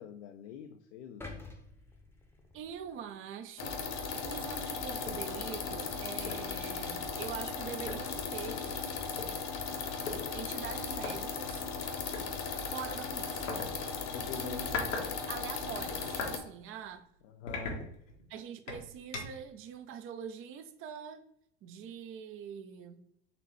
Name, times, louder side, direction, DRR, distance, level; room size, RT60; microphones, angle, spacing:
voice 1, 0.0-1.4 14.0-14.7 17.3-17.8, left 7 dB, 70° left, 0.5 m, -45 dB
sound 1, 1.2-3.4 3.8-4.0, left 3 dB, 5° left, 0.8 m, -49 dB
voice 2, 2.5-9.0 10.3-11.7 12.7-13.5 14.2-14.8 15.1-17.1 18.3-21.3 21.6-23.0, right 7 dB, 35° right, 0.5 m, -44 dB
sound 2, 3.6-16.4, left 5 dB, 45° left, 0.9 m, -37 dB
sound 3, 5.0-5.3 5.7-5.8 6.3-6.5 7.5-7.6 7.9-9.3 10.1-10.2 11.0-11.1 12.1-12.3 13.5-13.7 14.4-15.1 15.4-16.4 16.8-17.0 17.5-18.3 18.7-19.5, left 3 dB, 90° left, 1.1 m, -39 dB
4.1 x 3.2 x 3.0 m
hypercardioid pair, 80°, 36 cm